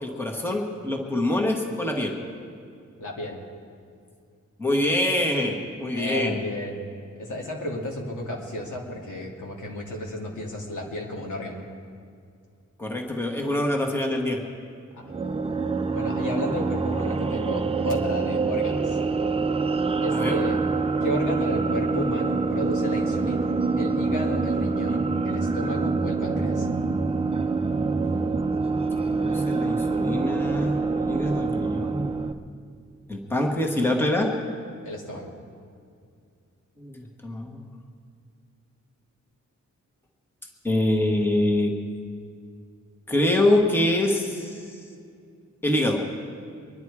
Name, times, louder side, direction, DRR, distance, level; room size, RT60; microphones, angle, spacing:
voice 1, 0.0-2.1 4.6-6.4 12.8-14.4 20.1-20.4 29.1-32.1 33.1-34.3 36.8-37.6 40.6-41.7 43.1-44.7 45.6-46.0, left 1 dB, 5° left, 1 dB, 1.4 m, -25 dB
voice 2, 3.0-3.4 5.9-6.8 7.1-11.7 14.9-15.3 15.9-19.0 20.0-20.6 21.0-26.7 34.8-35.3, left 1 dB, 85° left, -1 dB, 2.5 m, -33 dB
sound 1, 15.0-32.3, right 4 dB, 20° right, 0.5 m, -25 dB
24.0 x 10.5 x 4.8 m, 2.3 s
wide cardioid pair, 165°, 30 cm